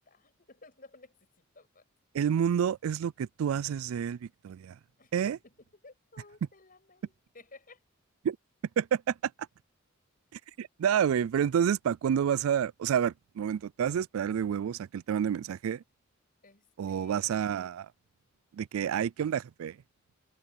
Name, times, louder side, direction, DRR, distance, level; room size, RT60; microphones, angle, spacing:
voice 1, 0.0-1.9 5.0-7.8 16.4-17.5, left 3 dB, 45° left, 7.5 m, -56 dB
voice 2, 2.1-4.7 5.1-5.4 8.2-8.4 8.8-9.1 10.6-15.8 16.8-17.9 18.5-19.8, right 8 dB, 85° right, 0.3 m, -29 dB
head